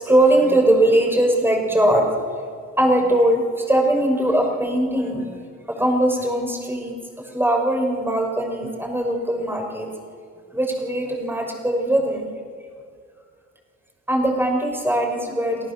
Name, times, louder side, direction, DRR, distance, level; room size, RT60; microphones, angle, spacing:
voice 1, 0.0-2.2 2.8-5.4 5.7-7.0 7.3-9.9 10.5-12.3 14.1-15.7, right 1 dB, 5° right, 2 dB, 6.1 m, -20 dB
28.5 x 17.5 x 7.1 m, 2.1 s
cardioid pair, 90°, 30 cm